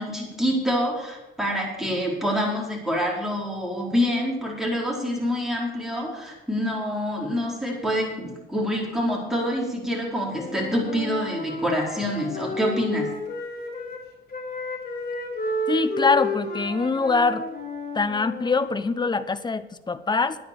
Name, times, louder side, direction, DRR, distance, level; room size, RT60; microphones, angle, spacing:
voice 1, 0.0-13.1, equal, ahead, -3 dB, 4.7 m, -26 dB
Wind instrument woodwind instrument, 10.3-14.0 14.3-18.7, left 1 dB, 45° left, 3.4 m, -32 dB
voice 2, 15.7-17.4 17.9-20.4, left 4 dB, 20° left, 13 dB, 0.8 m, -23 dB
10.0 x 9.6 x 7.1 m, 1.0 s
cardioid pair, 90°, 20 cm